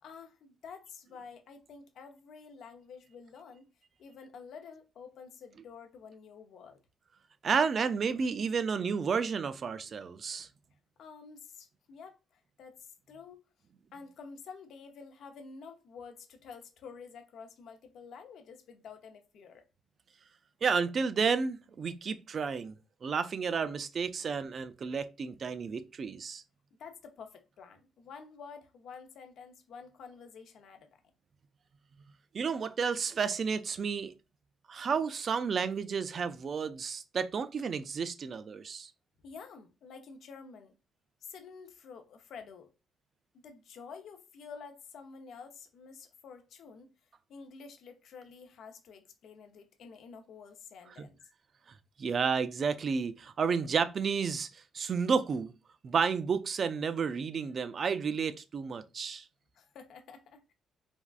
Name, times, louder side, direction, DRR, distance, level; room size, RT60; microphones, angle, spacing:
voice 1, 0.0-3.7 4.0-6.8 11.0-13.4 13.9-19.7 26.8-30.9 39.2-40.8 41.2-42.7 43.4-46.9 47.3-51.2 59.5-60.5, left 5 dB, 70° left, 0.5 m, -49 dB
voice 2, 7.4-10.5 20.6-22.7 23.0-26.4 32.3-34.1 34.7-38.9 51.0-51.1 52.0-55.5 55.8-59.3, right 5 dB, 50° right, 0.3 m, -31 dB
3.4 x 2.3 x 2.3 m
cardioid pair, 80°, 0 cm